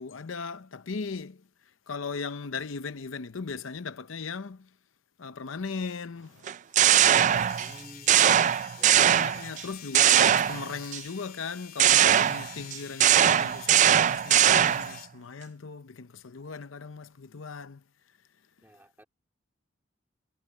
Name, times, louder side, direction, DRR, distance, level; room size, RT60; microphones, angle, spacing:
voice 1, 0.0-1.4 1.9-4.7 5.2-6.5 9.0-17.8, left 4 dB, 80° left, 0.7 m, -38 dB
sound 1, 6.5-7.7 8.1-9.6 9.9-11.0 11.8-15.0, right 10 dB, 40° right, 0.3 m, -21 dB
sound 2, 7.1-15.1, left 10 dB, 45° left, 3.2 m, -47 dB
voice 2, 7.6-9.5 18.6-19.0, equal, 10° right, 2.6 m, -53 dB
head